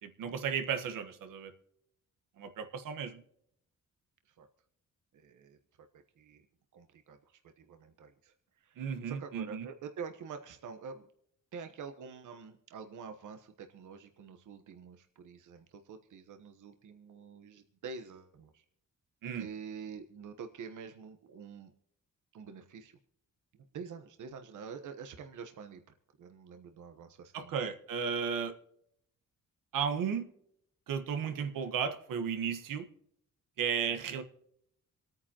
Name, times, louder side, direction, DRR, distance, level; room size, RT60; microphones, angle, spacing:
voice 1, 0.0-1.5 2.4-3.2 8.8-9.7 19.2-19.5 27.3-28.5 29.7-30.3 30.9-32.8 33.6-34.2, right 7 dB, 90° right, 8 dB, 1.5 m, -34 dB
voice 2, 5.1-5.6 6.2-6.4 6.7-8.3 8.6-8.8 9.1-11.1 11.5-18.6 19.3-21.7 22.3-22.9 23.7-25.8 26.2-27.5, right 6 dB, 70° right, 6 dB, 1.2 m, -47 dB
27.0 x 9.3 x 3.0 m, 0.73 s
cardioid pair, 120°, 32 cm